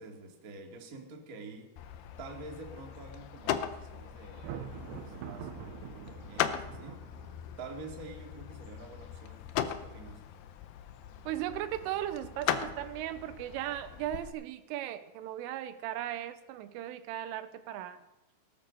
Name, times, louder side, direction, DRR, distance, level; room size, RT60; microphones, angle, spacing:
voice 1, 0.0-1.7 2.2-7.0 7.6-10.2, right 3 dB, 40° right, 1 dB, 1.3 m, -47 dB
sound 1, 1.8-14.3, left 10 dB, 80° left, 2.3 m, -39 dB
Thunder, 4.3-7.6, right 9 dB, 75° right, 2.7 m, -45 dB
voice 2, 11.3-18.0, right 12 dB, 90° right, 11 dB, 3.5 m, -37 dB
18.5 x 11.0 x 6.5 m, 0.97 s
omnidirectional pair, 5.7 m